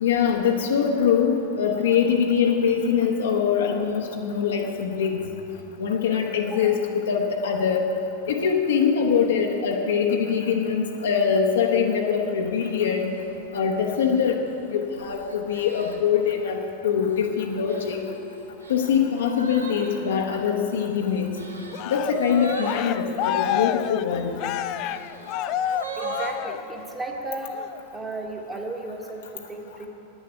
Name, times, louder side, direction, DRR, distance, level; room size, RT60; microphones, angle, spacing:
voice 1, 0.0-5.2 5.8-7.8 8.3-13.1 13.5-14.4 14.7-18.0 18.7-21.3 21.9-24.3, left 7 dB, 60° left, 1 dB, 0.9 m, -23 dB
sound 1, 13.0-13.3 14.0-16.3 16.9-17.3 17.7-23.6 24.3-26.4, right 3 dB, 75° right, 1.0 m, -39 dB
Cheering, 21.7-27.0 27.4-27.8, left 11 dB, 40° left, 0.3 m, -29 dB
voice 2, 26.0-27.5 27.9-29.9, right 2 dB, 15° right, 2 dB, 1.4 m, -35 dB
9.6 x 7.1 x 9.0 m, 2.9 s
figure-of-eight pair, 90°, 0 cm